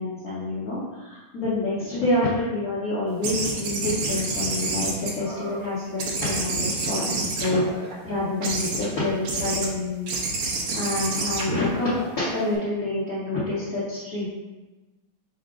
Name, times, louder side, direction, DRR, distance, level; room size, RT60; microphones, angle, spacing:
voice 1, 0.0-10.1 10.4-11.9 12.2-14.3, left 2 dB, 50° left, -10 dB, 1.4 m, -27 dB
sound 1, 3.2-5.6 6.0-7.9 8.4-8.9 9.2-9.7 10.1-12.6, right 3 dB, 90° right, 1.8 m, -29 dB
5.0 x 2.1 x 4.7 m, 1.1 s
omnidirectional pair, 2.4 m